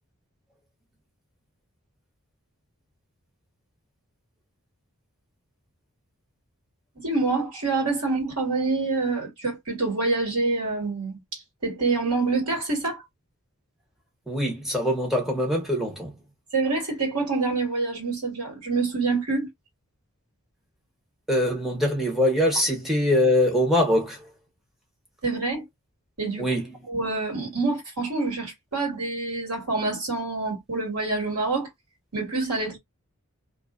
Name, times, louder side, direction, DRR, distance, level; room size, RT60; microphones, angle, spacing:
voice 1, 7.0-13.0 16.5-19.5 25.2-25.6 26.2-26.6 26.8-31.7 32.1-32.8, right 3 dB, 85° right, 1.8 m, -26 dB
voice 2, 14.3-16.1 21.3-24.2 26.4-26.6, left 1 dB, ahead, 0.8 m, -23 dB
2.7 x 2.3 x 2.4 m
head